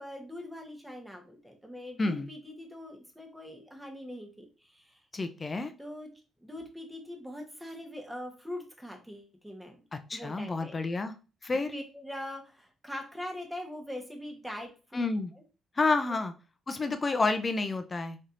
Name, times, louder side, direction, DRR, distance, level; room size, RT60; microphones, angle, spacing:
voice 1, 0.0-5.0 5.8-6.1 6.4-9.7 10.1-10.8 11.7-15.0, left 1 dB, 5° right, 2 dB, 1.1 m, -42 dB
voice 2, 5.1-5.7 9.9-11.1 11.4-11.7 14.9-15.3 15.8-16.3 16.7-18.2, left 3 dB, 30° left, 9 dB, 0.6 m, -29 dB
4.3 x 3.2 x 2.6 m, 0.34 s
cardioid pair, 90°, 0 cm